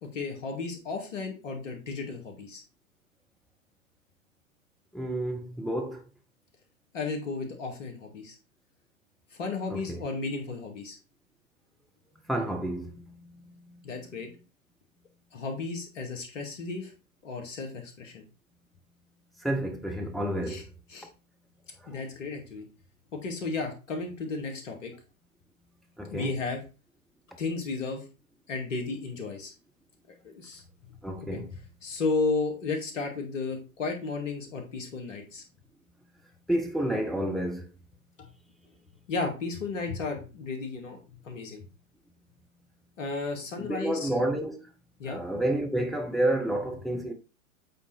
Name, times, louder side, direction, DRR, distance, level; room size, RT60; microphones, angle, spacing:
voice 1, 0.0-2.6 6.9-8.4 9.3-11.0 13.8-14.3 15.3-16.9 17.2-18.2 20.5-20.6 20.9-21.1 21.9-22.6 23.1-24.9 26.1-26.6 27.4-28.0 28.5-29.5 30.2-31.0 31.3-31.4 31.8-35.4 38.2-38.3 39.1-41.0 41.2-41.6 43.0-44.1 45.0-45.2, left 4 dB, 60° left, 2.4 m, -33 dB
voice 2, 4.9-6.0 9.7-10.0 12.3-13.8 19.4-20.7 21.8-22.0 26.0-26.3 31.0-31.5 36.5-37.7 43.6-44.7 45.1-47.1, right 1 dB, ahead, 0.5 m, -30 dB
8.2 x 3.8 x 4.3 m
figure-of-eight pair, 105°, 42 cm